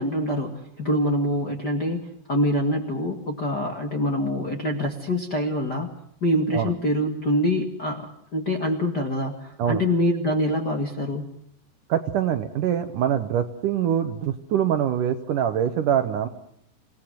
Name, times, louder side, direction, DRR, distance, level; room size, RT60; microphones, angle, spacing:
voice 1, 0.0-5.9 6.2-11.3, left 1 dB, 40° left, 2 dB, 1.6 m, -25 dB
voice 2, 11.9-16.3, right 9 dB, 65° right, 9 dB, 2.2 m, -24 dB
27.5 x 18.0 x 7.7 m, 0.73 s
omnidirectional pair, 4.7 m